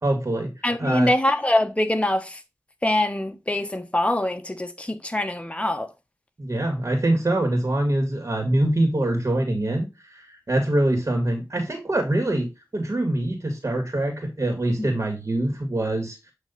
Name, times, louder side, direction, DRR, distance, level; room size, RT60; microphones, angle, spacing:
voice 1, 0.0-0.5 0.8-1.1 6.4-16.3, right 1 dB, 50° right, 1.9 m, -24 dB
voice 2, 0.6-2.3 2.8-5.9 14.8-14.9, left 1 dB, 20° left, 1.1 m, -24 dB
8.2 x 3.1 x 4.1 m
cardioid pair, 40°, 7 cm